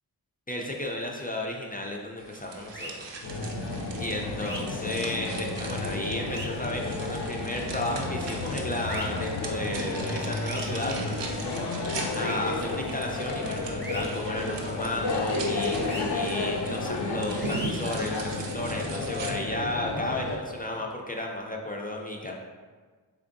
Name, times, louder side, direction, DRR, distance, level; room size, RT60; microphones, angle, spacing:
voice 1, 0.5-3.1 4.0-11.5 12.1-22.3, left 1 dB, 20° left, -1 dB, 0.4 m, -33 dB
sound 1, 2.2-19.3, right 4 dB, 85° right, 0.6 m, -41 dB
sound 2, 2.7-2.9 4.4-4.6 6.2-6.5 8.9-9.0 10.4-10.7 12.1-12.3 13.8-14.1 15.8-16.0 17.4-17.7, right 1 dB, 25° right, 0.7 m, -38 dB
sound 3, 3.2-20.4, left 3 dB, 75° left, 0.6 m, -32 dB
3.5 x 3.2 x 2.5 m, 1.4 s
wide cardioid pair, 70°, 42 cm